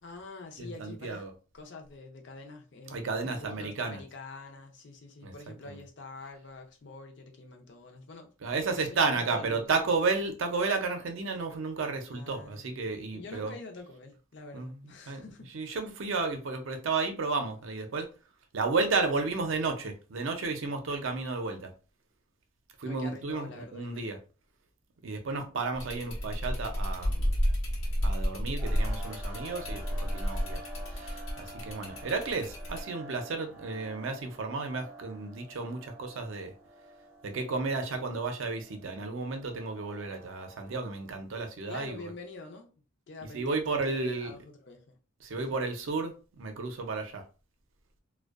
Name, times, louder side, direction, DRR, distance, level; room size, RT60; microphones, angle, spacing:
voice 1, 0.0-1.2 1.5-9.9 12.1-15.5 22.8-24.1 41.7-42.7 43.1-45.0 45.5-45.6, left 3 dB, 55° left, 0.5 m, -46 dB
voice 2, 0.6-1.3 2.9-4.0 5.2-5.4 5.6-5.8 8.4-13.5 14.5-18.1 18.5-21.7 22.8-24.2 25.0-27.3 28.0-30.6 30.9-36.5 37.2-42.1 43.2-44.4 45.2-47.2, right 4 dB, 70° right, 0.5 m, -32 dB
sound 1, 25.7-32.8, equal, 85° left, 0.8 m, -32 dB
sound 2, 28.6-41.0, right 1 dB, 10° right, 0.5 m, -49 dB
2.5 x 2.1 x 2.3 m
head